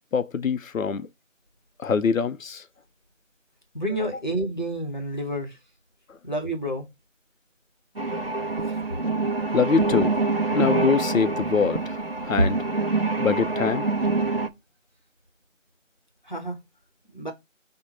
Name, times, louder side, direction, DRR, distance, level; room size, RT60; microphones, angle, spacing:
voice 1, 0.1-1.1 1.8-2.7 6.1-6.2 9.5-10.2 10.5-12.6 13.2-13.9, left 5 dB, 85° left, 0.6 m, -24 dB
voice 2, 3.7-5.6 6.2-6.9 16.2-16.6 17.1-17.3, right 1 dB, 35° left, 0.8 m, -29 dB
sound 1, 8.0-14.5, right 3 dB, 50° right, 0.5 m, -26 dB
5.1 x 2.1 x 4.5 m
figure-of-eight pair, 175°, 39 cm